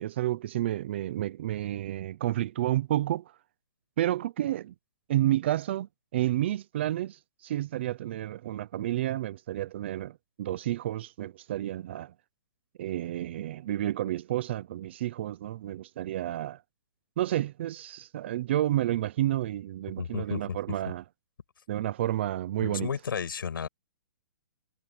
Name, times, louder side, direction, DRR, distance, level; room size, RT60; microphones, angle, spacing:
voice 1, 0.0-3.2 4.0-4.7 5.1-12.1 12.8-16.6 17.2-21.0 21.7-22.9, right 13 dB, 30° right, 0.5 m, -30 dB
voice 2, 20.0-20.6 22.6-23.7, left 7 dB, 85° left, 6.6 m, -33 dB
hypercardioid pair, 170°, 11 cm